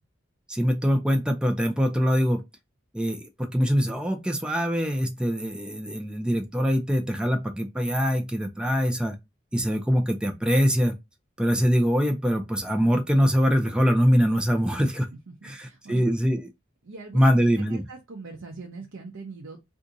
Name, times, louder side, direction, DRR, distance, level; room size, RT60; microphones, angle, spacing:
voice 1, 0.5-2.4 2.9-9.2 9.5-10.9 11.4-15.1 15.4-16.5 17.1-17.9, equal, 5° right, 0.4 m, -23 dB
voice 2, 15.3-16.0 16.8-17.4 17.7-19.6, right 3 dB, 75° right, 0.6 m, -41 dB
2.6 x 2.4 x 3.8 m
head